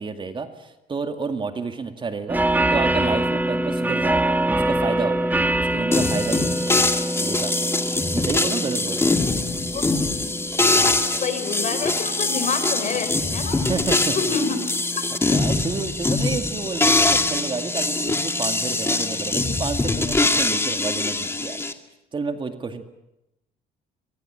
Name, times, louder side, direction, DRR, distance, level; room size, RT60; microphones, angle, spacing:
voice 1, 0.0-5.3 5.6-6.7 7.2-7.8 8.1-9.1 13.6-14.2 15.3-21.6 22.1-22.8, right 4 dB, 30° right, 7 dB, 2.1 m, -30 dB
sound 1, 2.3-19.6, right 1 dB, 10° right, 1.4 m, -27 dB
sound 2, 5.9-21.7, left 2 dB, 15° left, 2.1 m, -23 dB
voice 2, 10.7-13.6 14.2-14.6, left 5 dB, 45° left, 9 dB, 5.5 m, -27 dB
24.0 x 21.5 x 8.9 m, 0.90 s
cardioid pair, 110°, 17 cm